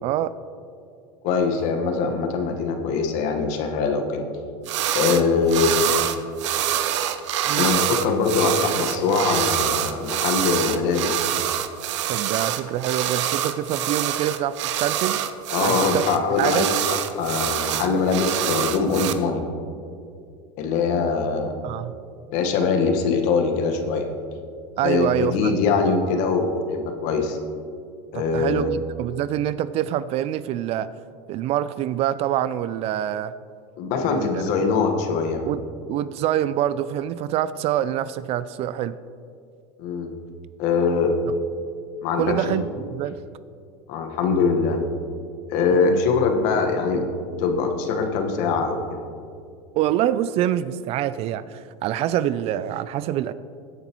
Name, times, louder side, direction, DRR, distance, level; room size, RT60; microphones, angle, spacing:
voice 1, 0.0-0.3 7.4-7.7 12.1-15.2 15.6-16.0 16.4-16.7 21.6-22.0 24.8-25.6 28.1-30.9 31.3-33.3 34.0-34.5 35.4-39.0 42.2-43.2 45.7-46.0 49.7-53.3, right 11 dB, 45° right, 16 dB, 0.4 m, -25 dB
voice 2, 1.2-4.3 4.9-5.9 7.6-11.2 15.5-16.8 17.1-19.4 20.6-21.5 22.3-24.1 24.8-27.4 28.1-28.7 33.8-35.5 39.8-40.1 40.6-41.2 42.0-42.6 43.9-44.8 45.5-47.1 47.4-49.0, left 4 dB, 60° left, 4 dB, 1.4 m, -22 dB
sound 1, 4.7-5.2 5.5-19.1, right 11 dB, 85° right, 0.7 m, -25 dB
16.5 x 9.3 x 3.1 m, 2.4 s
supercardioid pair, 120°, 15 cm